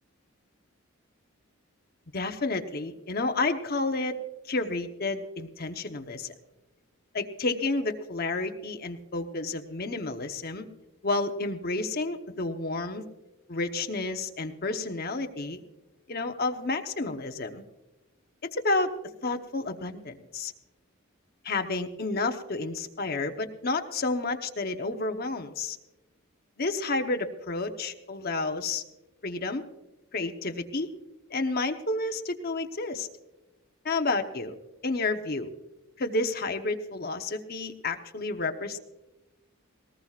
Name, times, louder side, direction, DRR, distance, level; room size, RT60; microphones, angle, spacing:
voice 1, 2.1-4.2 4.5-6.3 7.1-10.7 11.0-13.0 13.5-15.6 16.1-17.6 18.5-18.9 19.2-20.5 21.4-25.8 26.6-28.8 29.2-29.6 30.1-30.9 31.3-33.1 33.8-34.5 34.8-35.5 36.0-38.8, left 3 dB, 45° left, 6 dB, 1.0 m, -30 dB
20.5 x 19.0 x 2.4 m, 1.0 s
head